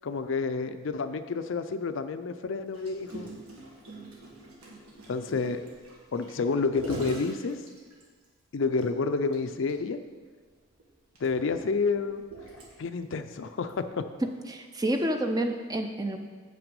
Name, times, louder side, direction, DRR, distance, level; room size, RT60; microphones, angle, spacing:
voice 1, 0.0-3.3 5.1-5.6 6.1-7.6 8.5-10.0 11.2-12.2 12.8-14.0, left 4 dB, 60° left, 10 dB, 0.4 m, -29 dB
Gurgling, 2.7-8.3 8.8-8.9 9.2-9.4 9.7-9.8 10.6-13.0 13.7-13.8, right 1 dB, 85° right, 1.7 m, -43 dB
voice 2, 14.2-16.2, right 1 dB, 15° right, 6 dB, 0.5 m, -29 dB
7.9 x 5.9 x 5.3 m, 1.5 s
head